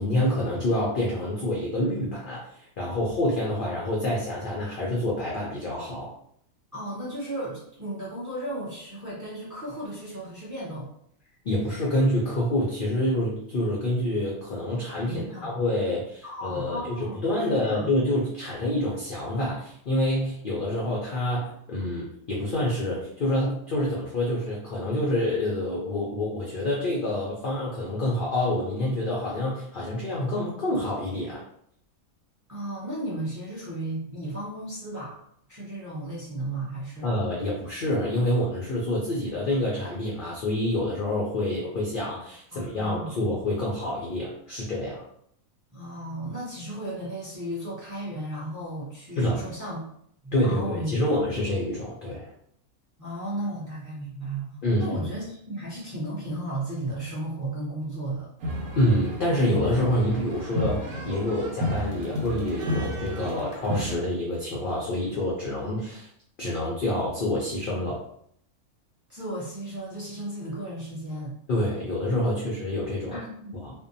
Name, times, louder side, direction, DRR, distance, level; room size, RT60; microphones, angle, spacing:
voice 1, 0.0-6.1 11.4-17.0 17.2-31.4 37.0-45.0 49.2-49.4 50.3-52.3 54.6-54.9 58.8-66.1 66.4-68.0 71.5-73.2 73.6-73.7, left 1 dB, 75° left, -4 dB, 0.4 m, -27 dB
voice 2, 6.7-10.9 15.1-15.6 16.2-17.9 32.5-35.2 35.5-37.1 42.5-43.2 45.7-49.8 50.2-50.9 53.0-58.3 69.1-71.3 73.1-73.5, right 1 dB, 20° right, -7 dB, 0.5 m, -34 dB
sound 1, 58.4-64.0, equal, 75° right, 1.0 m, -32 dB
2.6 x 2.1 x 2.6 m, 0.68 s
omnidirectional pair, 1.5 m